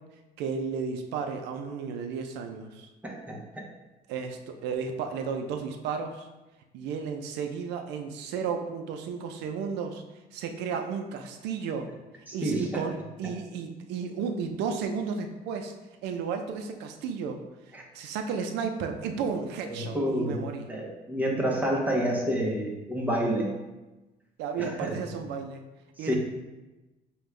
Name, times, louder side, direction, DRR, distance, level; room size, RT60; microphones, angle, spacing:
voice 1, 0.4-2.9 4.1-6.3 6.7-10.0 10.3-11.9 12.3-15.7 16.0-17.4 17.9-20.7 24.4-25.6 26.0-26.1, right 6 dB, 85° right, 5 dB, 0.5 m, -33 dB
voice 2, 3.0-3.6 12.3-12.8 13.2-13.3 17.7-17.8 19.6-20.4 20.7-23.6 24.6-25.0 26.0-26.2, equal, 10° right, -2 dB, 0.8 m, -29 dB
5.1 x 2.3 x 3.2 m, 1.1 s
cardioid pair, 110°, 17 cm